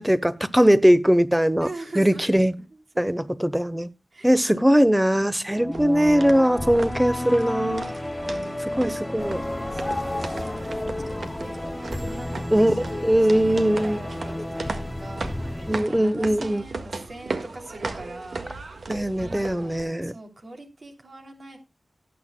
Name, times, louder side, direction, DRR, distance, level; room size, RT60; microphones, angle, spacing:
voice 1, 0.0-1.7 2.0-2.6 3.0-3.9 4.2-7.9 8.8-9.4 12.5-12.8 13.0-14.0 15.7-16.6 18.9-20.1, equal, 5° right, 15 dB, 1.0 m, -20 dB
voice 2, 1.6-3.1 4.1-6.1 8.3-18.9 19.2-21.6, right 1 dB, 60° right, 3 dB, 3.0 m, -43 dB
sound 1, 5.5-15.8, left 1 dB, 15° left, 0.5 m, -32 dB
sound 2, 5.7-19.8, right 3 dB, 80° right, 1.7 m, -37 dB
sound 3, 9.2-15.8, left 2 dB, 35° left, 0.9 m, -37 dB
18.5 x 9.1 x 2.2 m, 0.24 s
wide cardioid pair, 55°, 0 cm